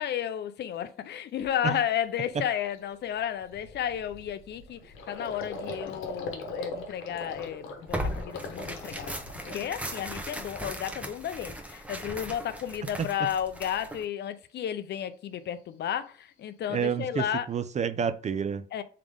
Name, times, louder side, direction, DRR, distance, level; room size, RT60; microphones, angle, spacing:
voice 1, 0.0-9.2 9.5-17.5 18.7-18.8, left 10 dB, 60° left, 0.5 m, -33 dB
Gurgling, 0.8-0.9 1.4-1.6 2.0-2.2 2.4-10.5 10.8-11.5, left 2 dB, 90° left, 1.0 m, -41 dB
Tearing, 7.9-14.0, equal, 5° right, 0.7 m, -38 dB
voice 2, 12.8-13.3 16.7-18.7, right 7 dB, 35° right, 0.4 m, -30 dB
3.7 x 3.5 x 3.5 m
cardioid pair, 90°, 20 cm